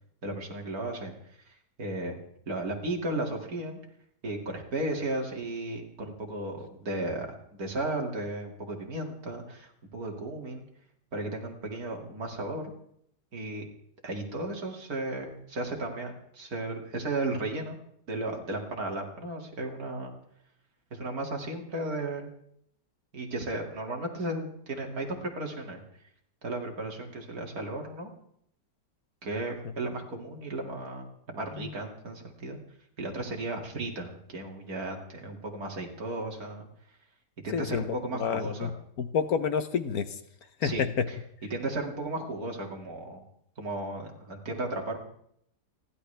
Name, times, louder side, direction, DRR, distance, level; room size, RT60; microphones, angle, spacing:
voice 1, 0.2-1.1 1.5-2.2 2.5-3.8 4.2-7.3 7.6-10.7 11.1-12.7 13.3-13.7 14.0-17.8 18.1-20.1 20.9-22.3 23.1-25.8 26.4-28.1 29.2-32.6 33.0-36.7 37.4-38.7 40.6-41.2 41.5-43.2 43.6-45.0, right 2 dB, 60° right, 1 dB, 2.8 m, -35 dB
voice 2, 37.5-37.9 38.2-38.7 39.0-40.1 40.6-41.0, left 6 dB, 65° left, 10 dB, 1.3 m, -28 dB
30.0 x 12.0 x 3.4 m, 0.70 s
omnidirectional pair, 1.8 m